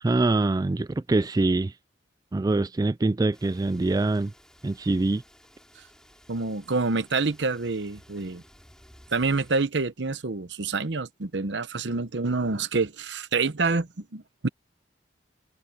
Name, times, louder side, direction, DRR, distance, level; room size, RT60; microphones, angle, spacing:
voice 1, 0.0-1.7 2.3-4.3 4.6-5.2, right 2 dB, 20° right, 0.3 m, -24 dB
sound 1, 3.3-9.7, equal, 5° left, 3.6 m, -55 dB
voice 2, 6.3-8.4 9.1-14.5, right 3 dB, 70° right, 0.9 m, -27 dB
head